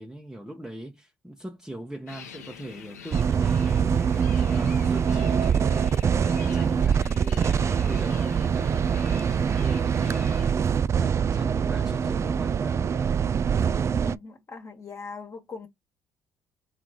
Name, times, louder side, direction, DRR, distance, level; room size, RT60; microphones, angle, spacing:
voice 1, 0.0-10.6 11.0-12.9, right 1 dB, 5° right, 0.9 m, -40 dB
sound 1, 2.1-10.5, left 7 dB, 90° left, 0.6 m, -45 dB
sound 2, 3.1-14.2, right 7 dB, 35° right, 0.3 m, -24 dB
voice 2, 13.9-15.7, left 4 dB, 35° left, 1.4 m, -40 dB
3.3 x 3.2 x 3.9 m
hypercardioid pair, 55°, 8 cm